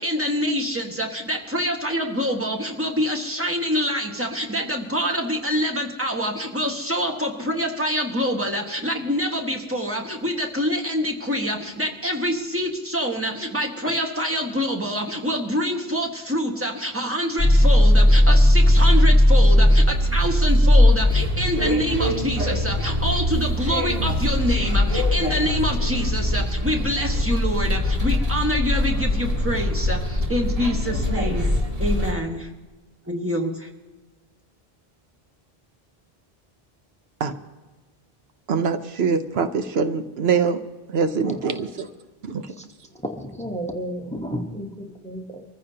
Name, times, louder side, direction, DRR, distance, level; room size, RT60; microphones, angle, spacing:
voice 1, 0.0-31.5 31.8-32.5 33.1-33.7, equal, 15° right, 1 dB, 1.6 m, -26 dB
sound 1, 17.4-32.1, left 1 dB, 35° right, 1.9 m, -19 dB
voice 2, 38.5-40.6 40.9-41.6 42.3-42.4, right 5 dB, 80° right, 9 dB, 1.0 m, -23 dB
voice 3, 43.0-45.4, equal, 5° left, 3 dB, 1.1 m, -32 dB
24.5 x 14.5 x 2.8 m, 1.2 s
omnidirectional pair, 1.0 m